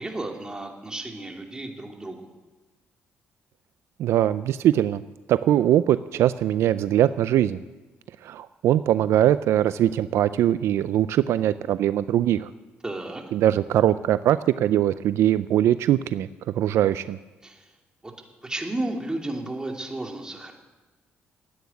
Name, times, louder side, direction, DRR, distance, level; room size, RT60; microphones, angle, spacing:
voice 1, 0.0-2.3 12.8-13.2 17.4-17.7 18.0-18.1 18.4-20.5, right 2 dB, 15° right, 2 dB, 2.7 m, -33 dB
voice 2, 4.0-5.0 5.3-7.6 8.2-12.5 13.3-16.3 16.6-17.2, right 11 dB, 75° right, 14 dB, 0.4 m, -21 dB
13.5 x 9.3 x 9.7 m, 1.2 s
cardioid pair, 85°, 5 cm